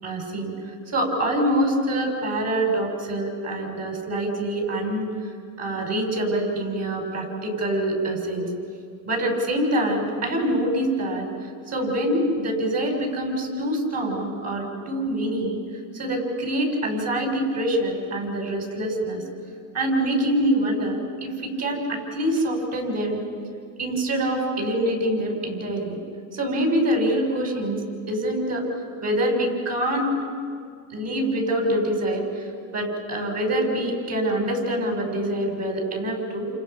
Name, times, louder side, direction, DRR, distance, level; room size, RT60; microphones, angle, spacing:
voice 1, 0.0-0.5 0.9-5.1 5.6-8.5 9.1-11.3 11.7-15.6 15.9-19.2 19.7-23.2 23.8-26.0 26.3-27.8 28.1-28.7 29.0-30.1 30.9-32.4 32.7-36.5, right 1 dB, 40° right, 1 dB, 6.6 m, -25 dB
29.0 x 29.0 x 5.8 m, 2.3 s
supercardioid pair, 125°, 40 cm